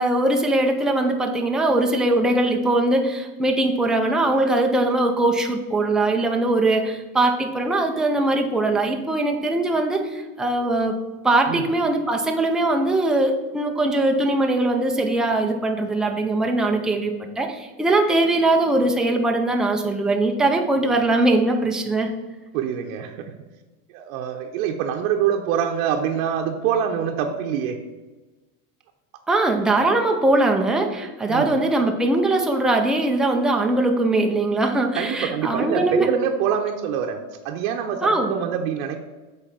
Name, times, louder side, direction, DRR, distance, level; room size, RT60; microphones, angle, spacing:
voice 1, 0.0-11.0 11.2-22.1 29.3-36.1 38.0-38.3, right 2 dB, ahead, 2 dB, 0.4 m, -21 dB
voice 2, 22.5-23.3 23.9-27.8 31.3-31.6 35.0-37.2 37.4-39.0, right 8 dB, 70° right, 2 dB, 0.8 m, -25 dB
7.1 x 4.0 x 5.6 m, 1.2 s
supercardioid pair, 130°, 43 cm